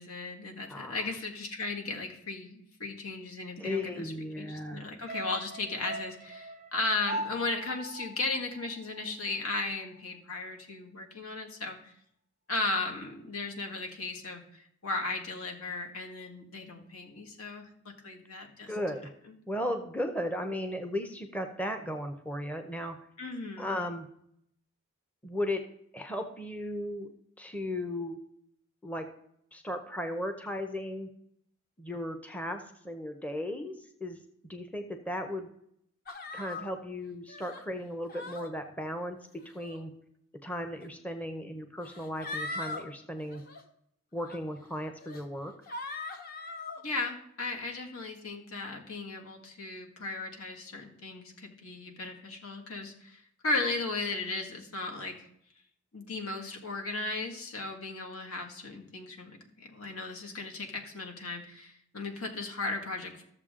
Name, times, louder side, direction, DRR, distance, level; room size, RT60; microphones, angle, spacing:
voice 1, 0.0-11.9 12.5-17.7 18.0-18.7 23.2-23.8 46.8-55.3 55.9-63.2, left 3 dB, 75° left, 2 dB, 1.9 m, -36 dB
voice 2, 0.7-1.1 3.6-4.8 18.7-19.1 19.5-23.0 23.6-24.1 25.2-25.6 25.9-27.1 27.4-28.2 28.8-29.1 29.5-31.1 31.8-35.5 36.3-39.9 40.4-43.4 44.1-45.5, left 1 dB, 5° left, 6 dB, 0.7 m, -36 dB
sound 1, 5.1-9.5 9.8-9.9, right 1 dB, 30° right, 0.4 m, -41 dB
sound 2, 36.1-36.7 37.3-37.6 38.1-38.5 39.4-39.8 40.8-40.9 41.8-42.8 43.2-43.6 44.2-44.4 45.0-45.2 45.7-46.8, left 2 dB, 40° left, 1.1 m, -40 dB
14.0 x 7.0 x 3.7 m, 0.71 s
head